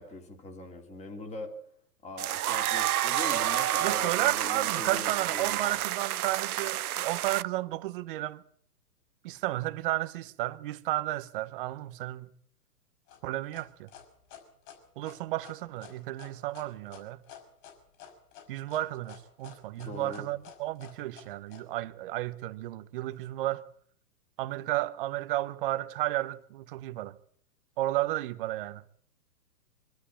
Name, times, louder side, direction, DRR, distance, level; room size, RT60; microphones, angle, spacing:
voice 1, 0.0-1.5 2.0-5.8 19.8-20.3, left 2 dB, 15° left, 2.7 m, -42 dB
sound 1, 2.2-7.4, right 13 dB, 65° right, 0.8 m, -29 dB
voice 2, 3.8-8.4 9.2-12.3 13.2-13.9 15.0-17.2 18.5-23.6 24.4-27.2 27.8-29.0, right 16 dB, 35° right, 0.9 m, -33 dB
sound 2, 13.1-21.6, left 10 dB, 30° left, 5.3 m, -50 dB
23.5 x 13.0 x 8.6 m
hypercardioid pair, 145°, 49 cm